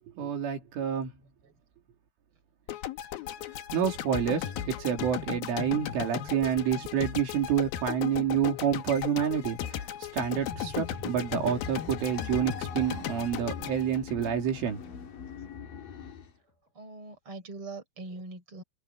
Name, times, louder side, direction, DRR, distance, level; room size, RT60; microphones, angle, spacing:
voice 1, 0.2-1.1 3.7-9.8 10.1-14.8, right 8 dB, 70° right, 5.8 m, -28 dB
sound 1, 2.7-14.9, left 11 dB, 70° left, 2.4 m, -36 dB
sound 2, 10.1-16.4, left 5 dB, 45° left, 4.7 m, -43 dB
voice 2, 16.7-18.6, right 3 dB, 25° right, 6.2 m, -42 dB
omnidirectional pair, 5.8 m